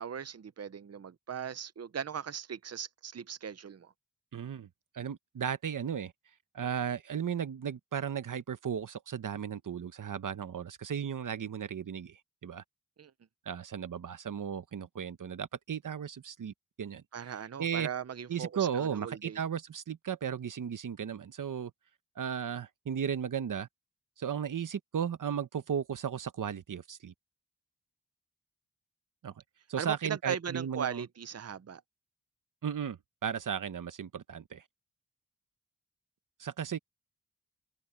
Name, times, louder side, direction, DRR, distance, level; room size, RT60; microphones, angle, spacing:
voice 1, 0.0-3.9 13.0-13.1 17.1-19.4 29.8-31.8, right 7 dB, 55° right, 0.7 m, -38 dB
voice 2, 4.3-4.7 4.9-6.1 6.5-12.6 13.5-17.0 17.6-17.9 18.3-21.7 22.2-23.7 24.2-27.1 29.2-29.3 29.7-31.0 32.6-34.6 36.4-36.8, right 8 dB, 90° right, 1.0 m, -35 dB
wide cardioid pair, 80°, 31 cm